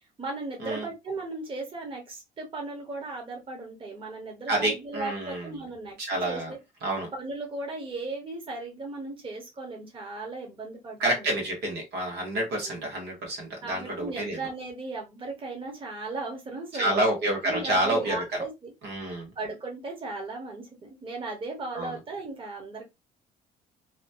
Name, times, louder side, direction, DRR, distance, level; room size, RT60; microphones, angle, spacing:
voice 1, 0.2-6.0 6.2-6.6 7.1-11.3 12.6-12.7 13.6-17.0 17.4-18.7 19.3-22.8, right 3 dB, 30° right, 1.2 m, -36 dB
voice 2, 4.5-5.5 6.0-6.5 6.8-7.1 11.0-14.4 16.7-18.4 18.8-19.3 21.7-22.0, right 1 dB, 80° right, 1.3 m, -28 dB
2.9 x 2.3 x 2.6 m
cardioid pair, 110°, 17 cm